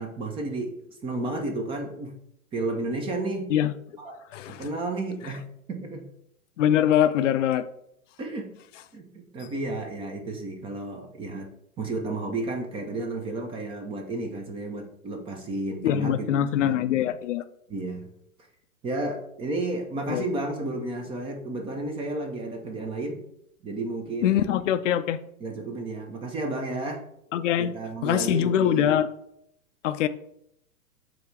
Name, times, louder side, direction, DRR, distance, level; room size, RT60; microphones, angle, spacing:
voice 1, 0.0-2.1 2.5-3.5 4.0-4.2 4.6-5.4 5.7-6.1 8.2-8.5 8.9-11.5 11.8-16.3 16.6-16.8 17.7-18.1 18.8-23.2 23.6-24.6 25.4-27.0 27.6-29.0, right 2 dB, 15° right, 0.5 m, -32 dB
voice 2, 6.6-7.6 15.8-17.4 20.1-20.2 24.2-25.2 27.3-27.7 28.0-29.1 29.8-30.1, left 10 dB, 55° left, 0.5 m, -23 dB
7.6 x 2.8 x 4.5 m
hypercardioid pair, 115°, 44 cm